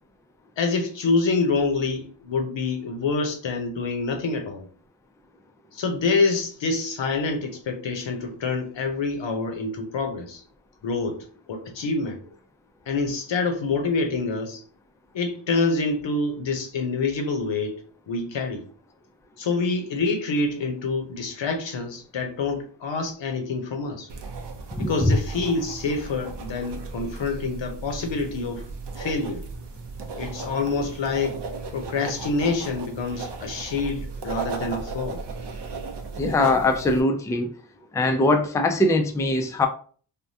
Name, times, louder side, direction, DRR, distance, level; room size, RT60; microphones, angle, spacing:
voice 1, 0.6-4.7 5.7-10.4 10.8-12.2 12.9-14.6 15.1-17.8 18.1-18.6 19.4-24.1 24.8-28.6 29.0-29.4 30.1-31.4 31.7-35.2, left 3 dB, 80° left, 4 dB, 0.8 m, -26 dB
sound 1, 24.1-37.0, right 4 dB, 65° right, 0.6 m, -36 dB
voice 2, 24.8-25.1 36.2-37.5 37.9-39.7, left 2 dB, 10° left, 5 dB, 0.3 m, -21 dB
3.4 x 2.2 x 2.7 m, 0.43 s
wide cardioid pair, 100°, 44 cm